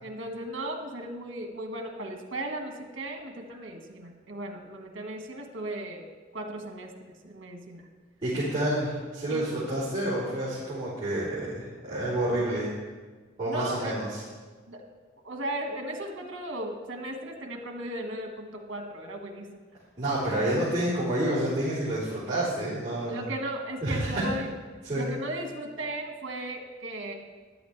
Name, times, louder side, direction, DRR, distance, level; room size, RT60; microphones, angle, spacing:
voice 1, 0.0-6.0 6.3-7.9 9.3-9.5 13.5-14.0 14.7-14.8 15.2-19.5 23.1-24.5 24.9-27.1, right 1 dB, 70° right, 3 dB, 1.7 m, -36 dB
voice 2, 8.2-12.7 13.4-14.2 20.0-23.2 23.8-24.2 24.8-25.1, right 1 dB, 25° right, -13 dB, 3.8 m, -29 dB
13.5 x 11.0 x 3.3 m, 1.4 s
head